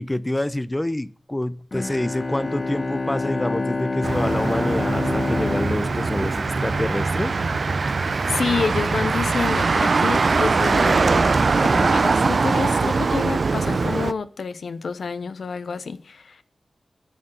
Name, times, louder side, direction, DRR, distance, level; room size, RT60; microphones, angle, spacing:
voice 1, 0.0-7.3, left 1 dB, 15° left, 0.6 m, -27 dB
Bowed string instrument, 1.7-7.3, left 3 dB, 45° left, 1.7 m, -28 dB
Motor vehicle (road), 4.0-14.1, right 4 dB, 60° right, 0.5 m, -22 dB
sound 1, 5.3-14.1, equal, 30° right, 2.6 m, -40 dB
voice 2, 8.3-11.4 11.6-16.4, left 5 dB, 90° left, 0.7 m, -28 dB
10.0 x 6.6 x 8.8 m
wide cardioid pair, 80°, 0 cm